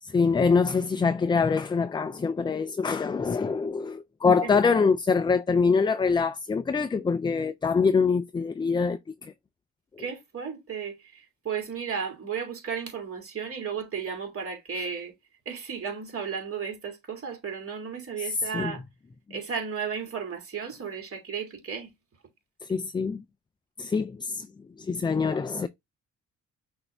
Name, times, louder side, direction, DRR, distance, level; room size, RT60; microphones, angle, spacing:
voice 1, 0.0-9.3 18.2-18.8 22.6-23.2 23.8-24.5 24.8-25.7, left 5 dB, 15° left, 0.3 m, -25 dB
voice 2, 10.0-15.1 15.5-18.8 19.3-21.9, right 6 dB, 50° right, 2.2 m, -34 dB
6.0 x 2.6 x 3.3 m
cardioid pair, 90°, 30 cm